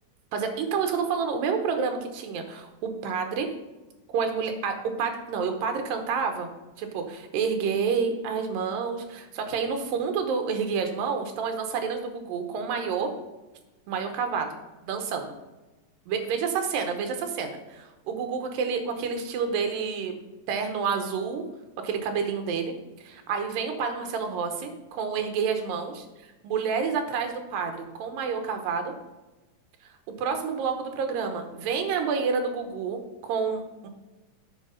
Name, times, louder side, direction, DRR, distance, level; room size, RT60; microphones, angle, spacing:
voice 1, 0.3-3.5 4.1-6.5 6.8-13.1 13.9-14.6 14.8-15.3 16.1-20.2 20.5-21.5 21.8-24.7 25.0-26.0 26.4-28.9 30.2-33.9, right 5 dB, 85° right, 5 dB, 2.8 m, -29 dB
8.8 x 6.0 x 5.6 m, 1.1 s
omnidirectional pair, 3.9 m